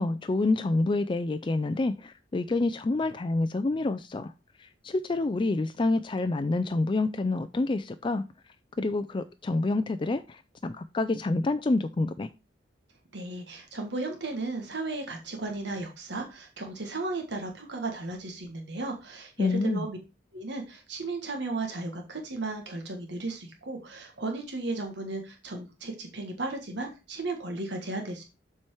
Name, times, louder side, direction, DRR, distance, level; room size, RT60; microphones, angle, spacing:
voice 1, 0.0-4.3 4.6-8.2 8.8-12.3 19.4-19.8, left 2 dB, 25° left, 0.4 m, -27 dB
voice 2, 13.1-20.0 20.3-28.2, right 2 dB, 65° right, 1.6 m, -35 dB
7.4 x 4.5 x 4.7 m
head